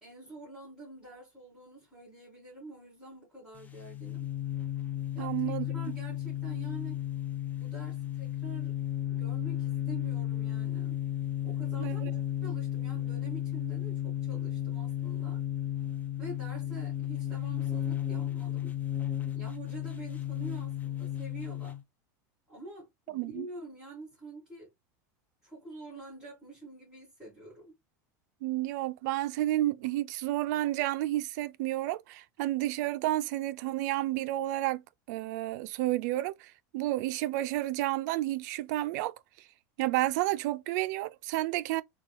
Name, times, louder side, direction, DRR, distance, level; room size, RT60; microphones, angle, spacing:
voice 1, 0.0-4.3 5.1-7.1 7.6-8.8 9.1-11.0 11.4-12.0 12.4-15.4 16.2-18.7 19.3-21.8 22.5-24.7 25.4-27.8, right 2 dB, 5° right, 2.2 m, -47 dB
sound 1, 3.6-21.8, left 12 dB, 15° left, 0.6 m, -34 dB
voice 2, 5.2-5.7 11.8-12.1 23.1-23.5 28.4-34.8 35.1-39.1 39.8-41.8, right 16 dB, 65° right, 0.4 m, -31 dB
4.0 x 2.3 x 2.3 m
supercardioid pair, 120°, 10 cm